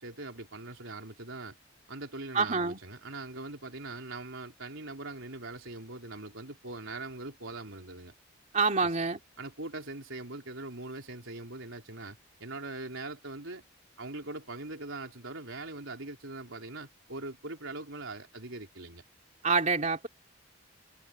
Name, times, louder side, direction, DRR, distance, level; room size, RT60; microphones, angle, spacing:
voice 1, 0.0-1.6 1.9-8.1 8.8-9.0 9.4-13.6 14.0-19.0, right 2 dB, 70° right, 3.7 m, -42 dB
voice 2, 2.3-2.8 8.5-9.2 19.4-20.1, right 4 dB, 35° right, 3.1 m, -26 dB
head